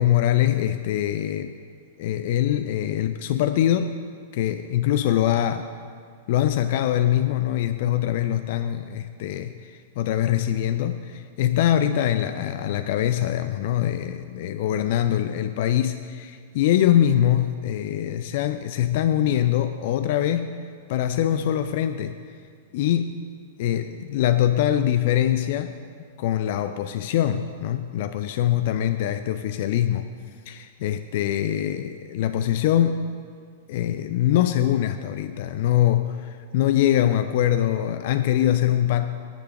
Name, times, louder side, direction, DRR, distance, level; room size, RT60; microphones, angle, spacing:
voice 1, 0.0-1.5 2.0-4.0 4.3-5.7 6.3-20.5 20.9-22.2 22.7-23.2 23.6-25.7 26.2-30.1 30.5-33.0 33.7-39.1, left 11 dB, 50° left, 9 dB, 0.4 m, -23 dB
10.5 x 6.7 x 6.5 m, 2.1 s
figure-of-eight pair, 100°, 0 cm